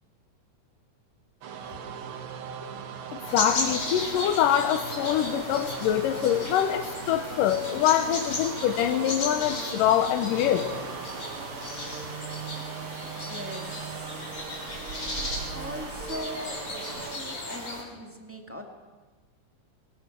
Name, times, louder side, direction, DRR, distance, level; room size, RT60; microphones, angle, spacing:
sound 1, 1.4-17.2, right 7 dB, 60° right, 1.5 m, -39 dB
sound 2, 3.2-17.8, left 2 dB, 40° left, 4.8 m, -35 dB
voice 1, 3.3-10.7, left 10 dB, 85° left, 7 dB, 2.5 m, -24 dB
voice 2, 13.1-14.4 15.1-18.6, equal, 5° right, 2 dB, 1.3 m, -41 dB
24.0 x 20.0 x 6.0 m, 1.3 s
omnidirectional pair, 3.8 m